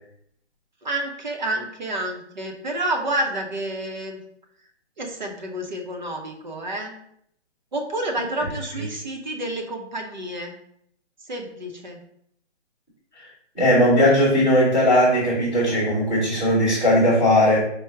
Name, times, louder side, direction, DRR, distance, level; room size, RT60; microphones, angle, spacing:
voice 1, 0.8-4.2 5.0-6.9 7.7-10.5 11.3-12.0, right 1 dB, 40° right, 3 dB, 0.6 m, -29 dB
voice 2, 13.5-17.6, equal, ahead, -12 dB, 0.8 m, -18 dB
4.5 x 2.0 x 4.5 m, 0.70 s
hypercardioid pair, 165°, 35 cm